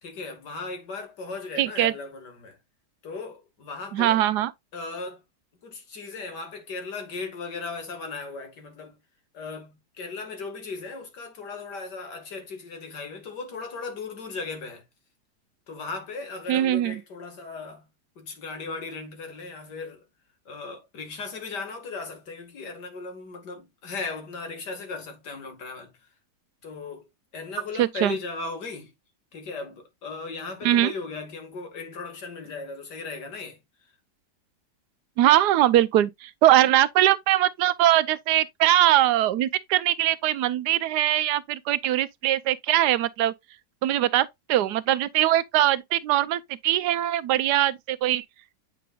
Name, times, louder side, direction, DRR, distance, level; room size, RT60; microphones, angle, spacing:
voice 1, 0.0-2.6 3.0-4.2 4.7-5.2 5.6-9.0 9.3-14.8 15.7-17.9 18.2-20.0 20.5-26.1 26.6-27.1 27.3-28.9 29.3-33.6, left 4 dB, 90° left, 2.5 m, -37 dB
voice 2, 1.6-1.9 3.9-4.5 16.5-17.0 27.8-28.2 30.6-30.9 35.2-43.3 43.8-48.2, right 13 dB, 85° right, 1.2 m, -22 dB
8.5 x 5.1 x 2.4 m
omnidirectional pair, 1.7 m